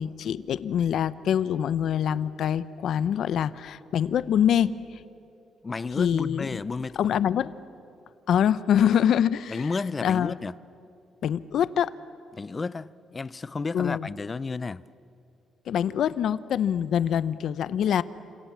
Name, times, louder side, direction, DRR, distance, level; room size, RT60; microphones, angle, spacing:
voice 1, 0.0-4.7 6.0-6.5 7.0-7.5 8.3-9.6 10.0-10.3 11.2-11.9 13.7-14.1 15.7-18.0, left 9 dB, 70° left, 0.8 m, -24 dB
voice 2, 5.6-7.0 9.5-10.5 12.3-14.8, left 4 dB, 30° left, 0.6 m, -32 dB
29.5 x 27.0 x 7.4 m
cardioid pair, 90°, 0 cm